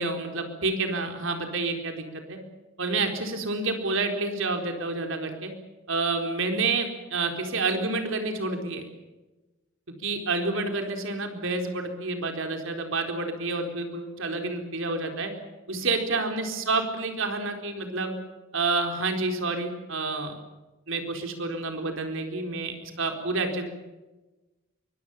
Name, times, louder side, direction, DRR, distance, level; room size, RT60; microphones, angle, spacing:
voice 1, 0.0-2.4 2.8-5.5 5.9-8.8 10.0-15.3 15.7-18.1 18.5-20.4 20.9-23.7, right 3 dB, 70° right, 5 dB, 4.2 m, -29 dB
24.5 x 22.5 x 7.4 m, 1.1 s
head